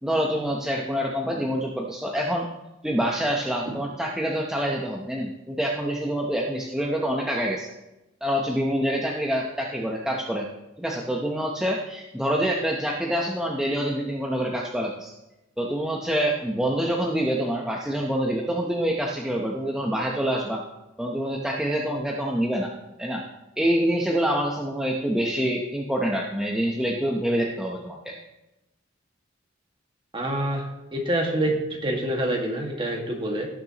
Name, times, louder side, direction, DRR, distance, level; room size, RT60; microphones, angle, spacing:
voice 1, 0.0-2.5 2.8-7.7 8.2-10.5 10.8-15.1 15.6-20.6 21.0-22.7 23.0-23.2 23.6-28.1, equal, 5° right, -1 dB, 0.8 m, -26 dB
voice 2, 30.1-33.5, right 1 dB, 25° right, 0 dB, 1.7 m, -27 dB
17.5 x 6.8 x 3.0 m, 0.96 s
head